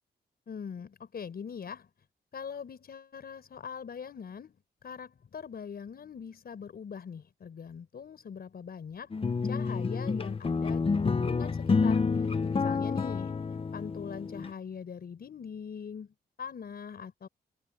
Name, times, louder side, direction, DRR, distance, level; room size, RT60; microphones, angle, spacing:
voice 1, 0.5-1.9 2.3-9.1 9.4-13.4 13.7-17.3, left 7 dB, 65° left, 5.8 m, -42 dB
sound 1, 9.1-14.5, left 4 dB, 35° left, 1.0 m, -29 dB
wide cardioid pair, 115°, 17 cm